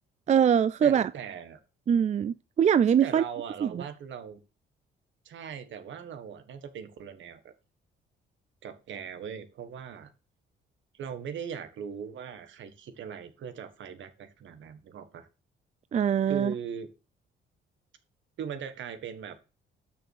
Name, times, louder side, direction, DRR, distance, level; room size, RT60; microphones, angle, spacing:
voice 1, 0.3-1.1 1.9-3.2 3.6-3.8 15.9-16.5, right 8 dB, 35° right, 0.4 m, -23 dB
voice 2, 0.8-1.6 3.0-4.4 5.2-7.5 8.6-10.1 10.9-15.3 16.3-16.9 18.4-19.4, right 7 dB, 70° right, 1.6 m, -40 dB
6.5 x 6.3 x 6.5 m
cardioid pair, 90°, 20 cm